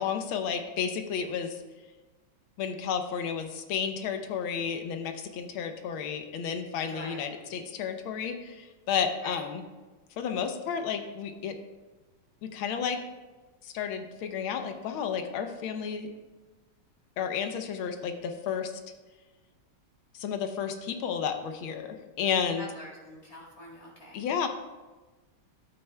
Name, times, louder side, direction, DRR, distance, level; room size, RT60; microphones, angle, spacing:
voice 1, 0.0-1.6 2.6-9.6 10.2-11.5 12.4-13.0 13.6-16.1 17.2-18.7 20.1-22.7 24.1-24.5, left 7 dB, 80° left, 6 dB, 1.5 m, -32 dB
voice 2, 6.9-7.2 9.2-9.4 22.6-24.2, equal, 20° left, -4 dB, 1.7 m, -44 dB
12.0 x 9.0 x 2.2 m, 1.2 s
omnidirectional pair, 2.3 m